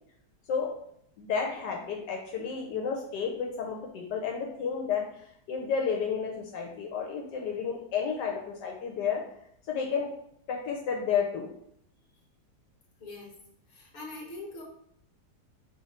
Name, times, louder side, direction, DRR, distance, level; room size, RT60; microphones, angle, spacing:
voice 1, 1.2-9.2 9.7-10.1 10.5-11.5, left 6 dB, 75° left, 1 dB, 1.2 m, -31 dB
voice 2, 13.0-13.4 13.7-14.6, left 2 dB, 45° left, -2 dB, 1.3 m, -42 dB
3.7 x 3.1 x 4.1 m, 0.70 s
omnidirectional pair, 1.9 m